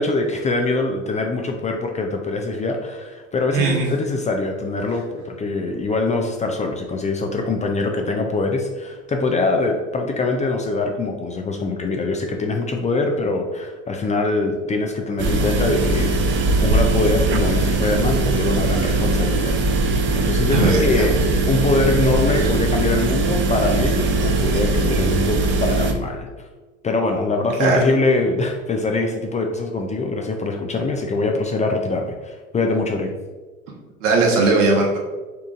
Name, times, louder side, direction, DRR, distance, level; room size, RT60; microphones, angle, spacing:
voice 1, 0.0-21.1 21.5-26.3 26.8-33.1, left 3 dB, 20° left, 3 dB, 0.4 m, -23 dB
voice 2, 3.5-3.9 20.5-21.1 22.3-22.5 27.6-27.8 34.0-35.0, right 3 dB, 70° right, -2 dB, 1.3 m, -18 dB
sound 1, 15.2-25.9, right 3 dB, 30° right, 0.6 m, -20 dB
5.6 x 3.7 x 2.5 m, 1.3 s
figure-of-eight pair, 70°, 39 cm